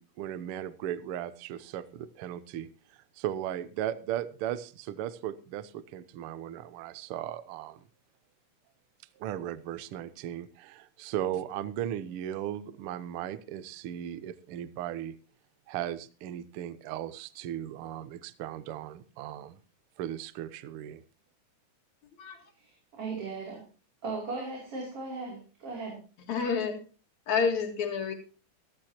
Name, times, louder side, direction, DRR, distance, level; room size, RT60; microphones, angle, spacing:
voice 1, 0.0-2.7 3.2-7.8 9.2-15.2 15.7-19.6 20.0-21.0, right 11 dB, 80° right, 15 dB, 1.2 m, -37 dB
voice 2, 22.6-23.6 24.0-26.0, right 3 dB, 50° right, -2 dB, 4.1 m, -37 dB
voice 3, 26.3-26.8 27.3-28.1, left 5 dB, 70° left, 3 dB, 3.4 m, -28 dB
15.0 x 14.0 x 2.9 m, 0.36 s
omnidirectional pair, 3.5 m